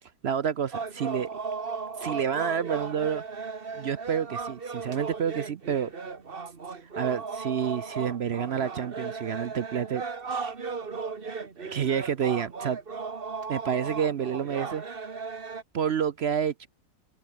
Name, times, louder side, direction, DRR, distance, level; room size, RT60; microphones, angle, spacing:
voice 1, 0.2-1.4 2.0-3.2 3.7-5.9 7.0-10.0 10.3-10.5 11.6-12.8 13.5-14.8 15.7-16.7, right 8 dB, 60° right, 0.6 m, -29 dB
sound 1, 0.7-15.6, right 5 dB, 35° right, 1.6 m, -36 dB
open air
omnidirectional pair, 1.9 m